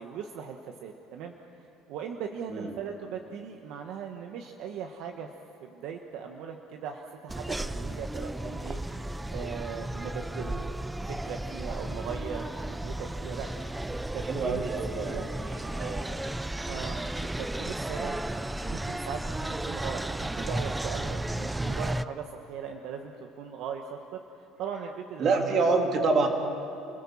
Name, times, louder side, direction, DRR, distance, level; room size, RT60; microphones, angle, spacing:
voice 1, 0.0-5.3 5.6-8.8 9.3-10.8 11.1-13.5 13.9-15.3 16.6-25.4, right 7 dB, 65° right, 3 dB, 1.3 m, -39 dB
sound 1, 7.3-22.0, right 1 dB, 5° right, 0.5 m, -34 dB
voice 2, 14.2-16.1 25.2-26.3, right 3 dB, 40° right, 3 dB, 2.9 m, -27 dB
29.5 x 17.5 x 7.2 m, 2.8 s
cardioid pair, 135°, 0 cm